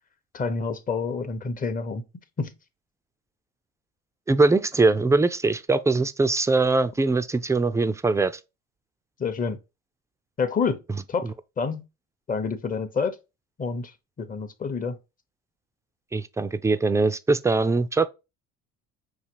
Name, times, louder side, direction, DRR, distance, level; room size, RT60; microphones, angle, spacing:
voice 1, 0.3-2.0 2.4-2.5 9.2-9.6 10.4-10.8 11.1-11.8 12.3-13.2 13.6-15.0, left 5 dB, 30° left, 0.8 m, -28 dB
voice 2, 4.3-8.3 11.2-11.3 16.1-18.1, right 3 dB, 10° right, 0.4 m, -22 dB
5.7 x 2.8 x 2.8 m
supercardioid pair, 95°, 30 cm